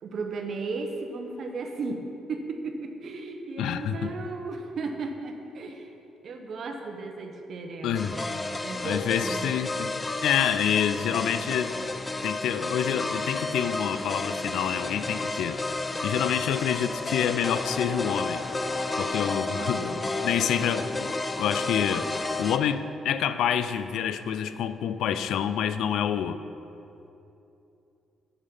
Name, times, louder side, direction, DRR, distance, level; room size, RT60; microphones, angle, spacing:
voice 1, 0.0-5.9 6.2-8.3 8.6-9.5 19.5-20.1, right 3 dB, 60° right, 4 dB, 1.0 m, -35 dB
voice 2, 3.6-4.1 7.8-8.2 8.8-11.8 12.2-15.6 16.0-18.4 19.0-20.0 20.2-22.1 22.4-26.4, left 9 dB, 80° left, 11 dB, 0.4 m, -27 dB
sound 1, 7.9-22.6, left 2 dB, 25° left, 0.5 m, -31 dB
8.5 x 7.3 x 5.3 m, 2.8 s
cardioid pair, 90°, 0 cm